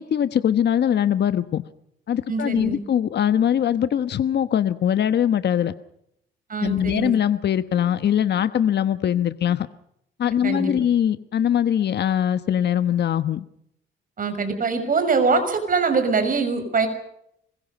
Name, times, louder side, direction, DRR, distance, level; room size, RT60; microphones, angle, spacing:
voice 1, 0.0-1.6 2.1-5.7 6.6-9.7 10.2-13.4, left 9 dB, 60° left, 12 dB, 1.2 m, -22 dB
voice 2, 2.3-2.8 6.5-7.1 10.4-10.7 14.2-16.9, right 4 dB, 45° right, 8 dB, 6.4 m, -23 dB
26.0 x 22.5 x 5.4 m, 0.75 s
cardioid pair, 90°, 20 cm